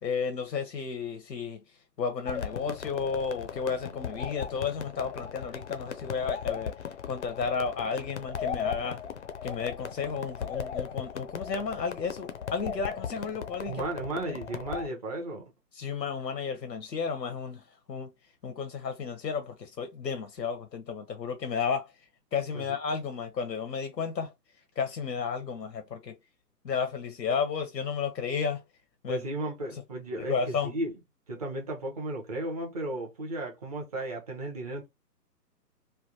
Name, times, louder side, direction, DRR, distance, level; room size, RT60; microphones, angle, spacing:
voice 1, 0.0-1.6 2.0-6.7 7.0-9.0 9.4-13.9 15.7-18.1 18.4-21.9 22.3-24.3 24.8-26.1 26.6-28.6 29.0-29.2 29.7-29.8 30.2-30.7, left 5 dB, 90° left, 0.8 m, -32 dB
sound 1, 2.3-14.9, left 7 dB, 45° left, 0.5 m, -37 dB
voice 2, 13.7-15.4 22.5-22.6 29.1-30.9 31.3-34.9, right 1 dB, 25° right, 0.8 m, -34 dB
3.3 x 2.2 x 2.7 m
figure-of-eight pair, 140°, 49 cm